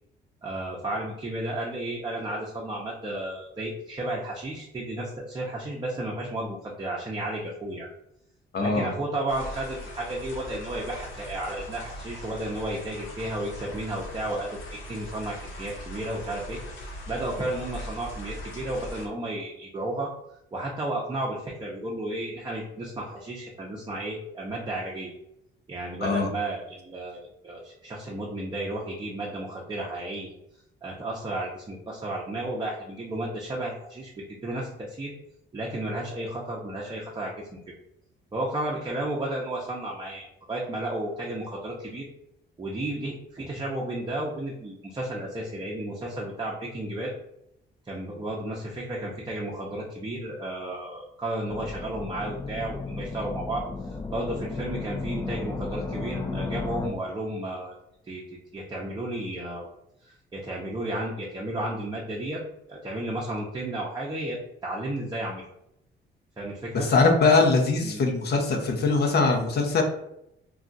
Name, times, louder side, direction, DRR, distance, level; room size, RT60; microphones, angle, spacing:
voice 1, 0.4-7.9 8.6-20.1 20.5-25.1 25.7-30.3 30.8-35.1 35.5-37.5 38.3-42.1 42.6-47.1 47.8-53.6 54.1-57.7 58.1-58.2 58.5-59.6 60.0-62.4 62.7-65.4 66.4-66.9 67.8-68.0, right 1 dB, 25° right, -3 dB, 0.6 m, -33 dB
voice 2, 8.5-8.9 26.0-26.3 66.7-69.8, left 3 dB, 55° left, 2 dB, 0.7 m, -22 dB
sound 1, 9.3-19.1, left 1 dB, 75° left, 0.9 m, -40 dB
sound 2, 51.5-56.9, left 3 dB, 15° left, 0.4 m, -34 dB
2.4 x 2.3 x 3.9 m, 0.79 s
cardioid pair, 90°, 20 cm